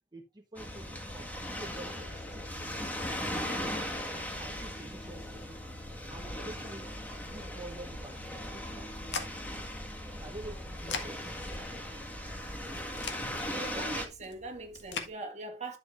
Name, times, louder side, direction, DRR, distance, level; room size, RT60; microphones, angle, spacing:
voice 1, 0.1-2.7 3.2-3.5 3.9-4.0 4.4-5.8 6.1-6.9 7.2-9.5 10.2-11.4, right 2 dB, 25° right, 1.0 m, -48 dB
sound 1, 0.6-14.1, left 1 dB, 10° left, 1.7 m, -38 dB
sound 2, 8.6-15.1, left 5 dB, 90° left, 1.6 m, -44 dB
voice 2, 13.5-15.8, right 2 dB, 40° right, 1.9 m, -41 dB
11.0 x 7.3 x 2.5 m
head